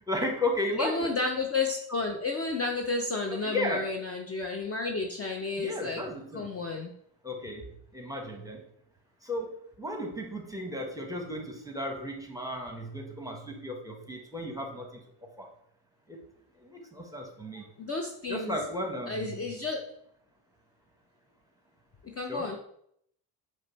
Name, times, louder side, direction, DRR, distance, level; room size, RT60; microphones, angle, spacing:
voice 1, 0.1-1.1 3.3-3.8 5.6-6.5 7.2-7.6 7.9-8.6 9.2-14.9 15.2-15.5 16.1-16.2 16.6-17.7 18.3-19.5 22.3-22.6, left 1 dB, 5° right, 3 dB, 0.9 m, -34 dB
voice 2, 0.8-6.0 6.3-6.9 17.8-18.6 19.1-19.8 22.0-22.6, left 3 dB, 30° left, 2 dB, 0.6 m, -31 dB
5.1 x 2.2 x 4.0 m, 0.70 s
supercardioid pair, 65°, 49 cm